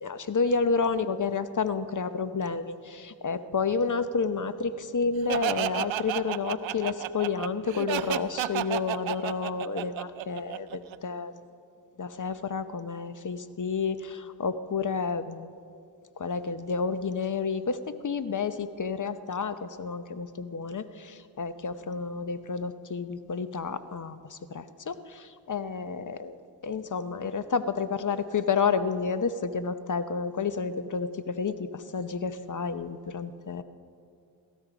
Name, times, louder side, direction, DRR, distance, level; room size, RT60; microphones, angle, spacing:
voice 1, 0.0-11.5 12.0-15.5 16.2-33.6, left 5 dB, 40° left, 12 dB, 0.9 m, -30 dB
Laughter, 5.3-11.0, right 13 dB, 80° right, 0.6 m, -31 dB
16.5 x 14.0 x 5.0 m, 2.4 s
supercardioid pair, 45°, 45 cm